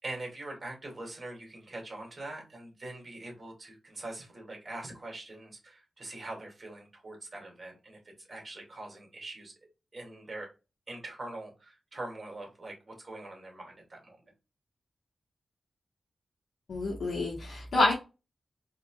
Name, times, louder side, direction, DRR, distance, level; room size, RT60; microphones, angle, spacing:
voice 1, 0.0-8.0 8.3-9.5 9.9-10.5 10.9-14.2, right 2 dB, 40° right, 1 dB, 2.2 m, -43 dB
voice 2, 16.7-17.9, left 2 dB, 70° left, -4 dB, 1.1 m, -27 dB
4.1 x 3.5 x 2.2 m, 0.29 s
cardioid pair, 75°, 0 cm